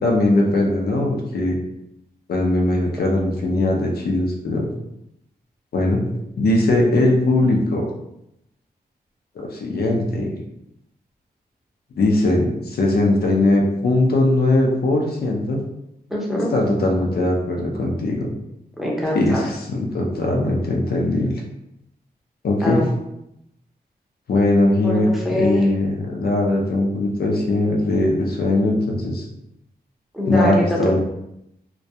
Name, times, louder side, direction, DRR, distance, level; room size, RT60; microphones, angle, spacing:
voice 1, 0.0-1.6 2.3-4.7 5.7-6.0 6.4-7.9 9.4-10.3 12.0-15.6 16.5-18.3 19.1-21.4 22.4-22.8 24.3-25.1 25.3-29.2 30.3-31.0, left 2 dB, 75° left, 0 dB, 0.5 m, -20 dB
voice 2, 16.1-16.5 18.8-19.4 22.6-22.8 24.8-25.7 30.1-30.8, left 1 dB, ahead, -4 dB, 0.6 m, -23 dB
2.2 x 2.2 x 2.7 m, 0.80 s
wide cardioid pair, 105°, 16 cm